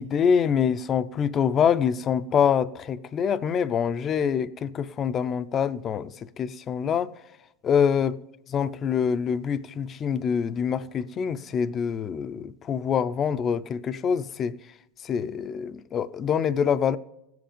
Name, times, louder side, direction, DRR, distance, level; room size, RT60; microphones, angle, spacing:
voice 1, 0.0-7.1 7.6-8.1 8.5-14.6 15.0-17.0, left 7 dB, 25° left, 0.4 m, -25 dB
16.5 x 7.7 x 5.2 m
supercardioid pair, 150°, 0 cm